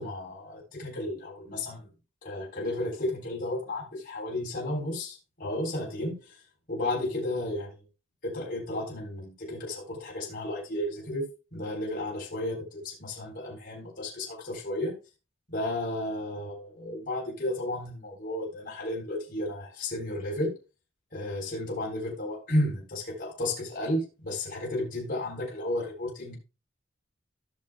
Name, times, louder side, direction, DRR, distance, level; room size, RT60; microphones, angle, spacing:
voice 1, 0.0-1.9 2.2-6.4 6.7-7.8 8.2-15.0 15.5-20.6 21.1-26.3, left 1 dB, 45° left, 3.6 m, -33 dB
16.0 x 6.6 x 2.2 m
head